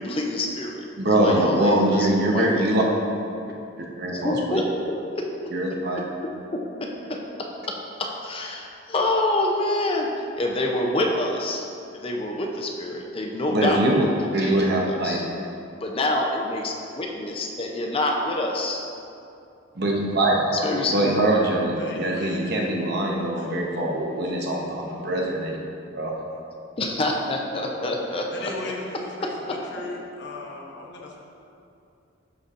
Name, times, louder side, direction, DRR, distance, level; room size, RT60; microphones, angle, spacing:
voice 1, 0.0-2.6 4.1-5.5 6.0-7.2 8.0-10.1 10.4-11.7 11.9-13.8 14.4-15.2 15.8-18.8 20.6-21.1 26.8-28.5 29.8-29.9, left 1 dB, 30° left, 0 dB, 0.5 m, -27 dB
voice 2, 1.0-2.8 4.0-4.6 5.5-6.0 13.5-14.0 14.3-15.2 19.8-20.7 20.9-25.6 25.9-26.1, right 1 dB, 55° right, -1 dB, 0.8 m, -23 dB
voice 3, 21.7-22.7 23.3-23.5 28.3-31.2, left 2 dB, 60° left, -2 dB, 0.9 m, -37 dB
11.5 x 4.2 x 2.5 m, 2.6 s
head